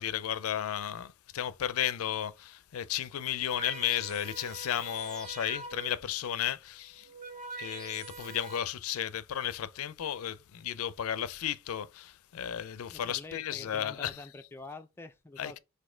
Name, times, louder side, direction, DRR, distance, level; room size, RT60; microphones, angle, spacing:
voice 1, 0.0-7.1 7.6-14.2 15.4-15.6, left 10 dB, 85° left, 0.4 m, -34 dB
sound 1, 3.6-6.2 6.9-8.6, right 4 dB, 40° right, 2.0 m, -44 dB
voice 2, 12.9-15.6, left 2 dB, 10° left, 0.4 m, -46 dB
4.2 x 2.7 x 4.4 m
head